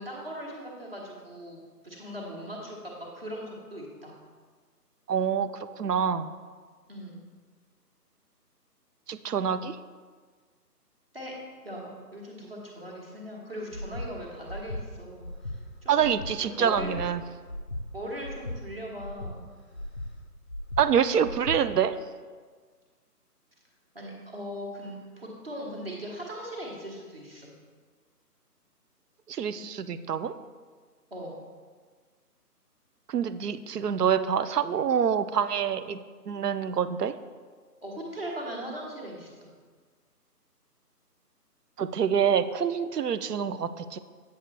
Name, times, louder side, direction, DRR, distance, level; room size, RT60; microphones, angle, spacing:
voice 1, 0.0-1.6 1.8-4.1 6.9-7.2 11.1-11.3 11.6-15.3 15.5-16.1 16.4-17.0 17.9-19.4 23.9-27.5 31.1-31.4 37.8-39.5, equal, 35° right, -2 dB, 1.3 m, -39 dB
voice 2, 5.1-6.3 9.1-9.8 15.9-17.2 20.8-22.0 29.3-30.3 33.1-36.0 36.3-37.1 41.8-44.0, right 8 dB, 75° right, 13 dB, 0.6 m, -26 dB
Breathing, 13.7-14.1 14.5-14.8 15.2-15.6 16.0-16.3 16.7-17.1 17.5-17.8 18.2-18.6 19.0-19.3 19.7-20.1 20.5-20.8 21.2-21.6, left 1 dB, 45° left, 0.5 m, -36 dB
7.9 x 6.8 x 3.3 m, 1.5 s
hypercardioid pair, 180°, 48 cm